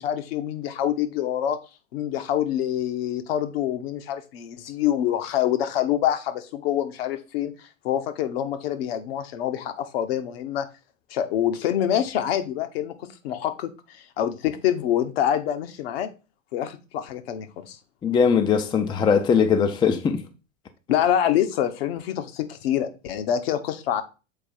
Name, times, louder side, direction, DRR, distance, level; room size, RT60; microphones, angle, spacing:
voice 1, 0.0-1.6 1.9-10.7 11.1-16.1 16.5-17.8 20.9-24.0, left 10 dB, 50° left, 1.1 m, -26 dB
voice 2, 18.0-20.2, left 6 dB, 10° left, 0.5 m, -20 dB
6.9 x 4.6 x 4.4 m
figure-of-eight pair, 90°, 38 cm